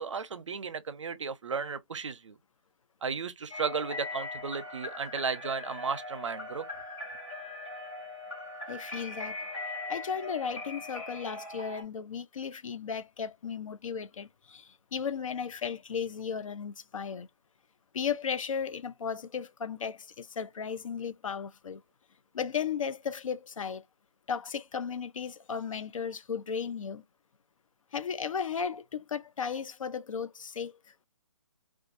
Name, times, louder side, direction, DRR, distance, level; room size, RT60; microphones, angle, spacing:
voice 1, 0.0-2.4 3.0-6.7, right 5 dB, 65° right, 0.6 m, -34 dB
sound 1, 3.5-11.8, left 2 dB, 15° left, 0.6 m, -40 dB
voice 2, 8.7-9.3 9.9-17.3 17.9-21.8 22.3-23.8 24.3-27.0 27.9-30.8, left 6 dB, 80° left, 0.4 m, -35 dB
2.5 x 2.3 x 2.5 m
hypercardioid pair, 175°, 17 cm